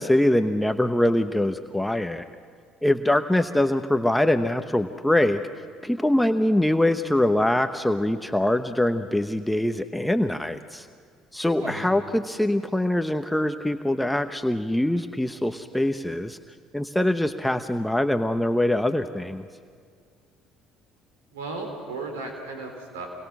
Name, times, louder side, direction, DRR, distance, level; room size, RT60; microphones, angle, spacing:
voice 1, 0.0-2.3 2.8-5.4 5.8-10.9 11.3-16.4 16.7-19.4, left 1 dB, 5° left, 8 dB, 1.0 m, -23 dB
voice 2, 21.3-23.1, right 3 dB, 90° right, 3 dB, 3.9 m, -35 dB
28.5 x 22.0 x 6.2 m, 2.1 s
hypercardioid pair, 65°, 0 cm